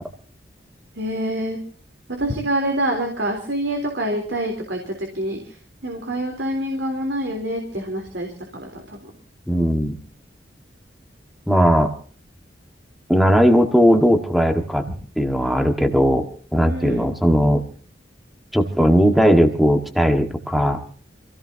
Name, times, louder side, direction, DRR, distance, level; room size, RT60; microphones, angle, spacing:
voice 1, 0.9-1.6 2.1-5.6 5.8-8.3 8.5-9.1 16.7-17.1, right 1 dB, 75° right, 2 dB, 3.7 m, -26 dB
voice 2, 9.5-9.9 11.5-11.9 13.1-14.8 15.2-16.3 16.5-17.6 18.5-20.8, equal, ahead, 5 dB, 1.7 m, -17 dB
27.0 x 17.0 x 2.9 m, 0.42 s
head